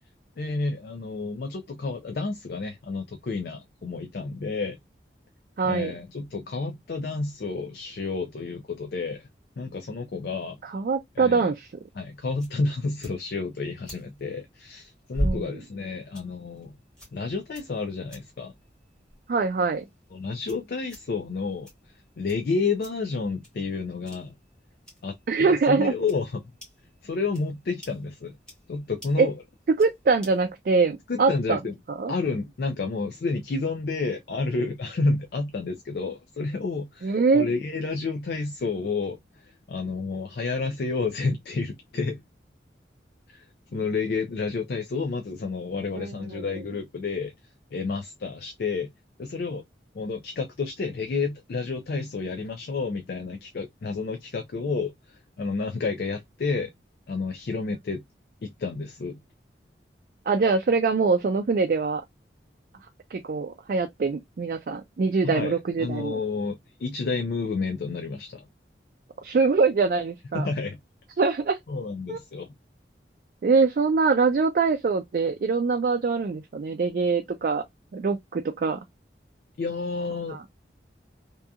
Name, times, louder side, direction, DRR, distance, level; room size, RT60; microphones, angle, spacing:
voice 1, 0.4-4.8 5.6-9.3 9.6-10.6 11.2-11.5 12.0-16.7 17.1-18.5 20.1-21.7 22.2-24.3 25.0-26.4 27.0-28.4 28.7-29.3 31.1-31.8 32.1-42.2 43.3-43.4 43.7-47.3 47.7-48.9 49.2-49.6 49.9-56.7 57.1-58.0 58.4-59.2 65.2-68.4 70.3-70.8 71.7-72.5 79.6-80.4, left 4 dB, 60° left, 0.4 m, -30 dB
voice 2, 5.6-5.9 10.6-11.7 15.2-15.6 19.3-19.8 25.3-25.9 29.2-29.3 29.8-31.6 32.0-32.1 37.0-37.5 46.0-46.5 60.3-62.0 63.1-66.2 69.2-70.5 71.2-71.6 72.1-72.2 73.4-77.6 77.9-78.8 80.3-80.4, right 4 dB, 55° right, 0.3 m, -23 dB
sound 1, 11.3-30.5, equal, 5° left, 1.1 m, -42 dB
2.8 x 2.3 x 2.2 m
head